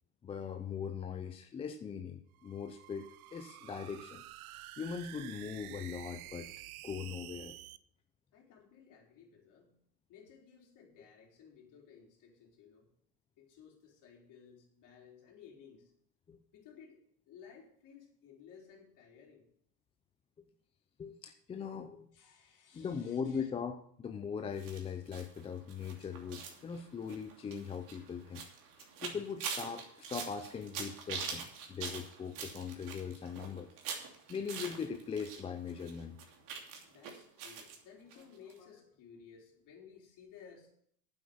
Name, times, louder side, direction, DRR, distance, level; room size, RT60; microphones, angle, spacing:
voice 1, 0.2-6.5 6.8-7.6 16.3-16.4 21.0-22.1 22.7-28.5 28.8-33.7 34.3-36.2, left 6 dB, 15° left, 6 dB, 0.5 m, -40 dB
sound 1, 2.4-7.8, right 16 dB, 65° right, 0.8 m, -50 dB
voice 2, 8.3-9.7 10.1-12.9 13.4-15.9 16.5-17.0 17.3-19.4 22.1-23.5 36.9-40.7, left 7 dB, 40° left, 0 dB, 4.1 m, -57 dB
sound 2, 24.6-35.4 35.7-37.8 38.1-38.2 38.5-38.6, right 6 dB, 45° right, 2.9 m, -44 dB
9.3 x 8.0 x 7.1 m, 0.67 s
supercardioid pair, 120°, 47 cm